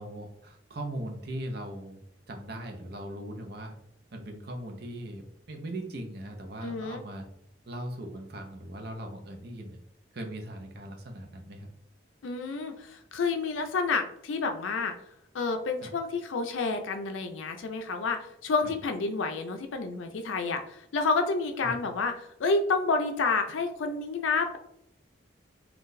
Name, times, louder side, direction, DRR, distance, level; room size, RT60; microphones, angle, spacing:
voice 1, 0.0-2.0 2.3-3.7 4.1-7.3 7.7-9.8 10.1-11.7 15.8-15.9 18.6-18.7 21.6-21.7, right 1 dB, 55° right, 3 dB, 0.6 m, -39 dB
voice 2, 6.6-7.0 12.2-14.9 15.3-24.6, left 4 dB, 90° left, 6 dB, 0.4 m, -29 dB
3.8 x 2.4 x 2.6 m, 0.74 s
head